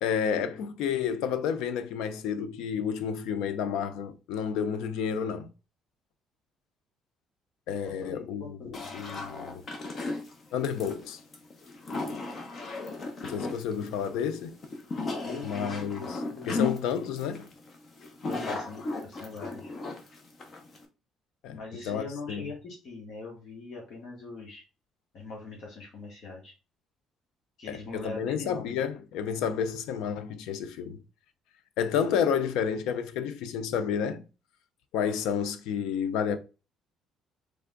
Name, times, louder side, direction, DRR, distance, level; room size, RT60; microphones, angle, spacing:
voice 1, 0.0-5.5 7.7-9.6 10.5-11.2 13.2-14.6 15.4-16.2 16.5-17.5 21.4-21.6 21.9-22.4 27.7-31.0 31.8-34.3 34.9-36.4, left 7 dB, 90° left, 0.5 m, -30 dB
voice 2, 7.7-8.9 15.2-16.7 18.2-19.7 21.5-24.6 25.1-26.5 27.6-28.8, left 3 dB, 55° left, 1.5 m, -42 dB
sound 1, 8.7-20.8, left 3 dB, 40° left, 0.9 m, -35 dB
3.5 x 3.3 x 3.7 m
cardioid pair, 130°, 0 cm